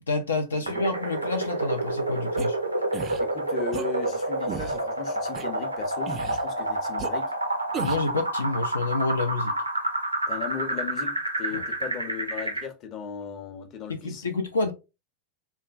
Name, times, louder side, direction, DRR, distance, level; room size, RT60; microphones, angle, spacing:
voice 1, 0.1-2.6 7.8-9.5 11.5-11.6 14.0-14.7, left 3 dB, 75° left, 0.4 m, -28 dB
sound 1, 0.7-12.7, right 2 dB, 85° right, 0.5 m, -29 dB
sound 2, 2.4-2.5 2.9-3.2 3.7-3.9 4.5-4.8 5.3-5.4 6.0-6.4 7.0-7.1 7.7-8.1, right 6 dB, 30° right, 0.3 m, -34 dB
voice 2, 3.2-7.3 10.3-14.2, left 7 dB, 35° left, 0.6 m, -37 dB
3.1 x 2.2 x 2.4 m
figure-of-eight pair, 90°, 0 cm